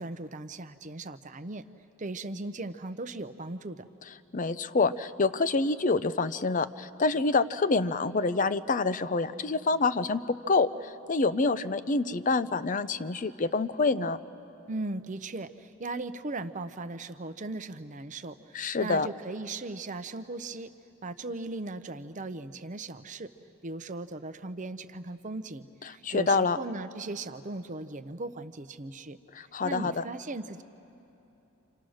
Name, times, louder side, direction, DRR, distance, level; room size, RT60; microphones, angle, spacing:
voice 1, 0.0-1.6 2.0-3.9 14.7-20.7 21.0-23.3 23.6-29.2 29.6-30.6, right 2 dB, 35° right, 11 dB, 0.7 m, -38 dB
voice 2, 4.3-14.2 18.5-19.1 26.0-26.6 29.3-30.0, left 3 dB, 35° left, 13 dB, 0.5 m, -27 dB
29.0 x 26.5 x 6.4 m, 3.0 s
head